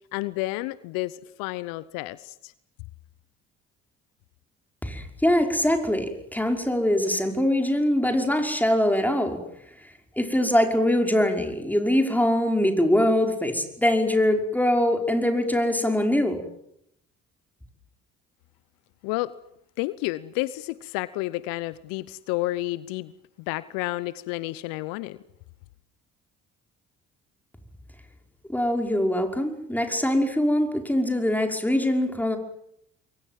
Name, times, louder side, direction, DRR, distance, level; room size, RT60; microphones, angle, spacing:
voice 1, 0.1-2.5 19.0-19.3 19.8-23.1 23.4-25.2, left 19 dB, 70° left, 18 dB, 0.9 m, -30 dB
voice 2, 4.8-9.4 10.2-16.4 28.5-32.4, left 1 dB, 5° left, 4 dB, 5.5 m, -23 dB
28.0 x 23.0 x 7.6 m, 0.74 s
hypercardioid pair, 55°, 35 cm